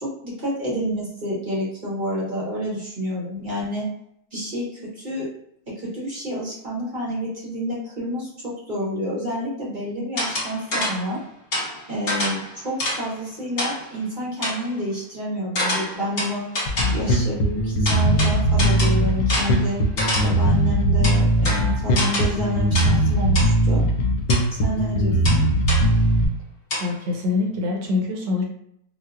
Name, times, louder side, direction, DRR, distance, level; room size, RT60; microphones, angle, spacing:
voice 1, 0.0-3.8 4.3-5.3 5.8-11.2 11.9-16.4 16.9-19.8 20.2-23.8 24.6-25.4, equal, 40° right, -6 dB, 0.7 m, -29 dB
sound 1, 10.2-11.1 11.5-13.1 13.6-13.9 14.4-14.7 15.6-17.1 17.9-20.5 21.0-22.4 22.8-23.1 23.4-23.6 24.3-24.5 25.2-25.9 26.7-26.9, left 1 dB, 45° left, 1.3 m, -27 dB
Bass guitar, 16.7-26.3, right 1 dB, 75° left, 1.1 m, -19 dB
voice 2, 26.8-28.4, left 3 dB, 75° right, -1 dB, 1.4 m, -24 dB
4.4 x 2.1 x 2.4 m, 0.73 s
omnidirectional pair, 1.9 m